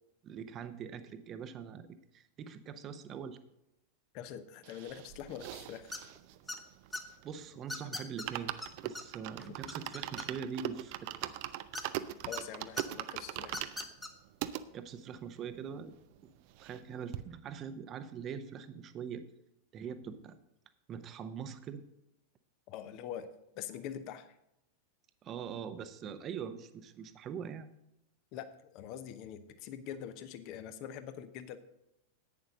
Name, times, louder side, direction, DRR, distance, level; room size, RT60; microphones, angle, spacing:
voice 1, 0.2-3.4 7.2-8.5 8.8-11.3 14.7-15.9 16.6-19.2 19.7-20.4 20.9-21.8 25.2-27.7, right 7 dB, 30° right, 11 dB, 0.9 m, -43 dB
voice 2, 4.1-5.9 12.3-13.7 22.7-23.3 23.5-24.3 28.3-31.6, left 9 dB, 40° left, 11 dB, 0.9 m, -44 dB
sound 1, 4.6-7.4 7.7-7.8 8.1-14.6 15.2-15.3 15.5-15.6 15.9-16.9 17.1-17.2, right 14 dB, 45° right, 0.5 m, -41 dB
sound 2, 5.9-6.2 6.5-7.0 7.7-8.3 8.6-8.7 9.0-9.1 9.4-10.6 11.7-12.4 12.8-12.9 13.5-14.1, left 2 dB, 10° left, 1.1 m, -40 dB
10.5 x 9.3 x 3.8 m, 0.83 s
figure-of-eight pair, 90°, 0 cm